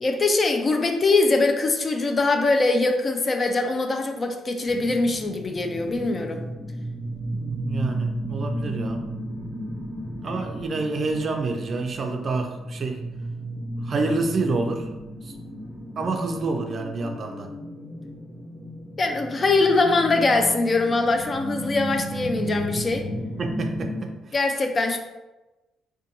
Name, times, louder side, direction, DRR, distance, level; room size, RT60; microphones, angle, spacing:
voice 1, 0.0-6.4 19.0-23.1 24.3-25.0, left 3 dB, 35° left, 5 dB, 0.3 m, -22 dB
sound 1, 4.6-24.0, equal, 10° right, 0.7 m, -34 dB
voice 2, 7.3-9.0 10.2-13.0 13.8-14.9 15.2-15.3 16.0-17.5 23.4-24.1, right 3 dB, 45° right, 4 dB, 0.4 m, -28 dB
2.6 x 2.2 x 2.8 m, 1.1 s
cardioid pair, 90°, 0 cm